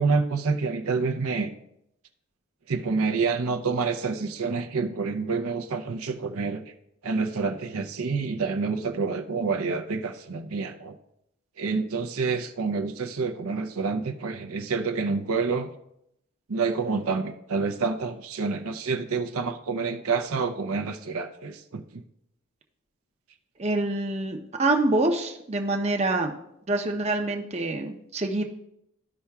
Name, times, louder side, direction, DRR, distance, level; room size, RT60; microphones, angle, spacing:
voice 1, 0.0-1.5 2.7-6.7 7.0-11.0 11.6-15.7 16.5-22.0, right 4 dB, 75° right, 6 dB, 0.6 m, -28 dB
voice 2, 23.6-26.3 26.7-28.4, right 2 dB, 30° right, 3 dB, 0.6 m, -26 dB
13.0 x 5.6 x 2.3 m, 0.78 s
head